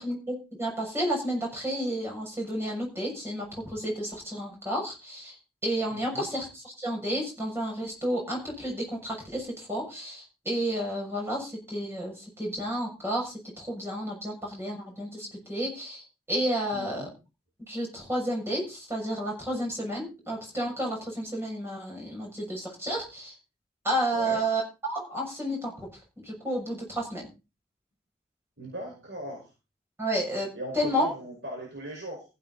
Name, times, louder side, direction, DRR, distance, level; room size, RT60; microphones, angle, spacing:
voice 1, 0.0-5.3 5.6-16.0 16.3-17.1 17.7-23.3 23.8-25.9 26.2-27.3 30.0-30.5 30.7-31.0, equal, 15° right, -2 dB, 6.8 m, -31 dB
voice 2, 5.9-6.3 16.7-17.1 24.1-24.4 28.6-29.5 30.5-32.2, right 1 dB, 70° right, -1 dB, 5.4 m, -38 dB
15.0 x 10.0 x 4.2 m, 0.30 s
head